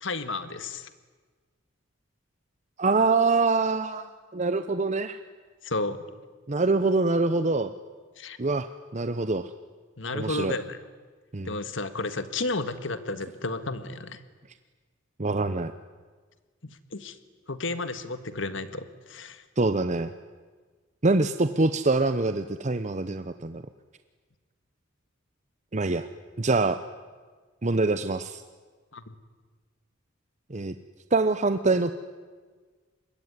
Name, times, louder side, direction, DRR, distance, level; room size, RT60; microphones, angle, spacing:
voice 1, 0.0-0.9 5.6-6.0 8.2-8.4 10.0-10.8 11.5-14.2 16.9-17.2 17.5-19.4 28.9-29.2, left 3 dB, 70° left, 11 dB, 1.8 m, -32 dB
voice 2, 2.8-5.2 6.5-7.7 8.4-9.5 10.1-10.5 11.3-11.5 15.2-15.7 19.6-20.1 21.0-23.6 25.7-26.1 26.4-26.8 27.6-28.4 30.5-30.7 31.1-31.9, right 3 dB, 35° right, 10 dB, 0.8 m, -25 dB
26.5 x 22.0 x 9.6 m, 1.4 s
head